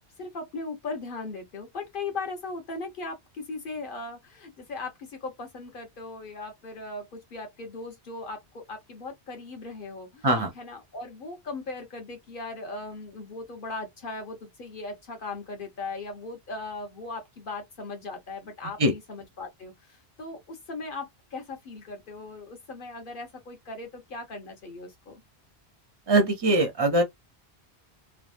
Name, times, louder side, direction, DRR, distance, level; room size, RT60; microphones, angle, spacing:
voice 1, 0.2-10.3 10.6-25.2, left 3 dB, 55° left, 1.3 m, -38 dB
voice 2, 26.1-27.0, right 1 dB, 30° right, 0.5 m, -22 dB
3.2 x 2.3 x 2.4 m
omnidirectional pair, 1.1 m